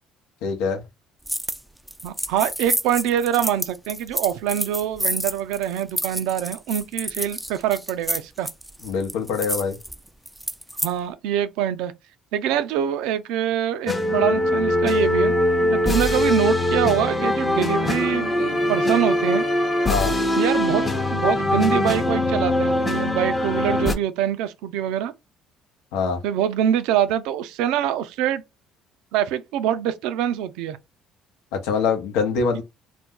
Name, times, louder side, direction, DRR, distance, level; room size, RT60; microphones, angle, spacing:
voice 1, 0.4-0.8 8.8-9.8 19.9-20.1 25.9-26.2 31.5-32.6, left 5 dB, 80° left, 0.7 m, -24 dB
sound 1, 1.2-1.6 1.9-10.9, right 1 dB, 5° right, 0.3 m, -29 dB
voice 2, 2.0-8.5 10.8-11.9 12.3-15.3 15.7-19.5 20.4-25.1 26.2-28.4 29.1-30.8, right 10 dB, 80° right, 0.4 m, -24 dB
sound 2, 13.9-23.9, left 1 dB, 20° left, 0.7 m, -22 dB
2.5 x 2.1 x 3.6 m
supercardioid pair, 75°, 0 cm